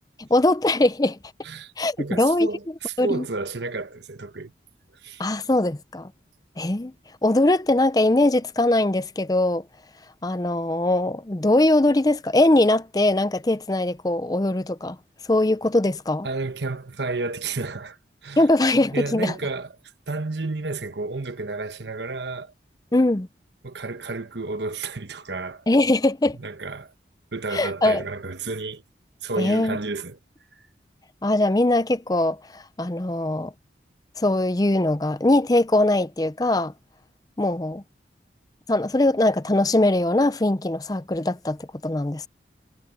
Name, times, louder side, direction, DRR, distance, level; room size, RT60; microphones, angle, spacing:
voice 1, 0.2-1.2 1.8-2.5 3.0-3.2 5.2-6.1 6.6-6.9 7.2-9.6 10.2-15.0 15.3-16.3 18.4-19.3 22.9-23.3 25.7-26.4 27.5-28.0 29.4-29.8 31.2-33.5 34.2-36.7 37.4-37.8 38.7-41.6 41.8-42.3, left 1 dB, 20° left, 0.6 m, -21 dB
voice 2, 2.0-4.5 4.9-5.2 16.2-18.4 18.9-19.7 20.1-22.5 23.6-25.7 26.4-26.9 27.3-28.8 29.2-30.2, right 3 dB, 80° right, 1.2 m, -31 dB
head